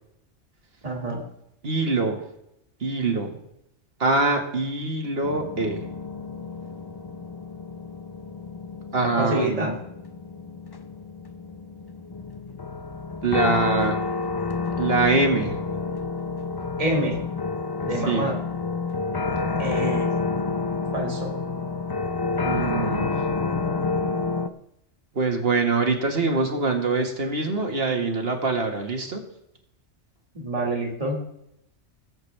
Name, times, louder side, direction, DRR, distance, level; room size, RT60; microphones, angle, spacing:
voice 1, 0.8-1.3 9.0-9.8 16.8-17.2 17.8-18.4 19.6-20.1 20.9-21.3 30.3-31.2, right 1 dB, 30° right, 0 dB, 2.1 m, -27 dB
voice 2, 1.6-2.2 2.8-3.4 4.0-5.8 8.9-9.8 13.2-14.0 14.8-15.6 18.0-18.3 22.4-23.1 25.1-29.2, right 3 dB, 55° right, 3 dB, 1.9 m, -24 dB
sound 1, 5.2-24.5, left 4 dB, 35° left, 0.4 m, -29 dB
18.5 x 8.0 x 3.4 m, 0.79 s
omnidirectional pair, 1.3 m